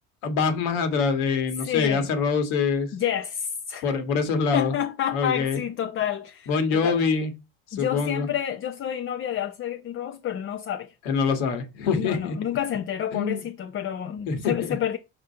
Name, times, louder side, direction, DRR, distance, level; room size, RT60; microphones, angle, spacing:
voice 1, 0.2-2.9 3.8-4.7 5.1-5.6 6.5-7.3 7.7-8.3 11.1-12.4 13.1-13.4 14.3-14.5, left 5 dB, 90° left, 1.8 m, -24 dB
voice 2, 1.6-2.1 2.9-4.0 4.5-7.0 7.7-10.9 12.0-15.0, left 10 dB, 35° left, 0.6 m, -29 dB
5.2 x 4.1 x 5.6 m
cardioid pair, 115°, 35 cm